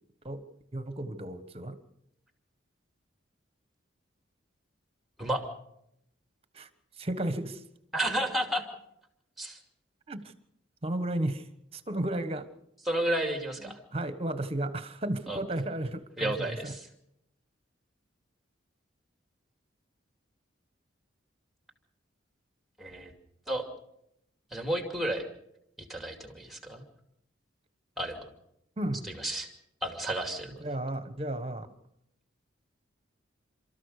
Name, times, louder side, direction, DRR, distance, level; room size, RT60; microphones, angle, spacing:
voice 1, 0.7-1.8 6.5-6.7 6.9-7.6 10.1-10.3 10.8-12.5 13.7-16.7 28.8-29.1 30.6-31.7, right 1 dB, 30° right, 12 dB, 1.3 m, -33 dB
voice 2, 7.9-8.6 9.4-9.6 12.8-13.8 15.3-15.4 16.2-16.9 22.8-23.1 23.5-23.6 24.5-25.3 25.9-26.8 28.0-28.2 29.2-29.5 29.8-30.6, right 1 dB, ahead, 5 dB, 2.5 m, -31 dB
29.0 x 13.5 x 6.6 m, 0.80 s
head